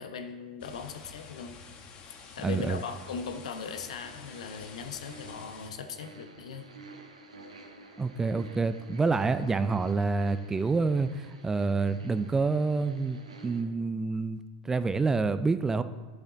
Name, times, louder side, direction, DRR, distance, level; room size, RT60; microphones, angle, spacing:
voice 1, 0.0-1.6 2.3-6.7, left 6 dB, 75° left, 6 dB, 1.0 m, -39 dB
sound 1, 0.6-5.7, left 5 dB, 40° left, 1.5 m, -49 dB
voice 2, 2.4-2.8 8.0-14.4 14.6-15.8, right 4 dB, 15° right, 12 dB, 0.5 m, -27 dB
sound 2, 2.6-13.6, right 3 dB, 90° right, 1.3 m, -51 dB
11.5 x 7.0 x 4.0 m, 1.3 s
hypercardioid pair, 95°, 3 cm